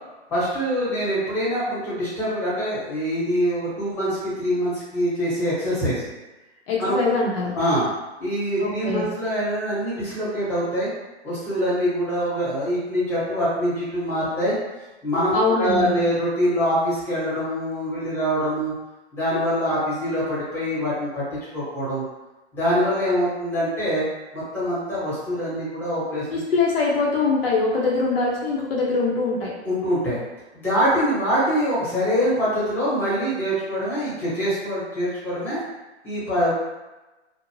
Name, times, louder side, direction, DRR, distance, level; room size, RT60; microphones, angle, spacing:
voice 1, 0.3-6.1 6.8-7.0 7.5-7.9 8.2-10.9 11.2-14.5 15.0-18.7 19.1-21.2 21.5-22.0 22.5-24.0 24.3-26.4 29.6-30.2 30.5-35.6 36.0-36.5, equal, 5° left, -10 dB, 1.0 m, -24 dB
voice 2, 6.7-7.5 8.6-9.1 15.3-16.0 26.3-29.5, left 3 dB, 55° left, -3 dB, 0.7 m, -23 dB
2.6 x 2.1 x 3.0 m, 1.1 s
hypercardioid pair, 150°, 34 cm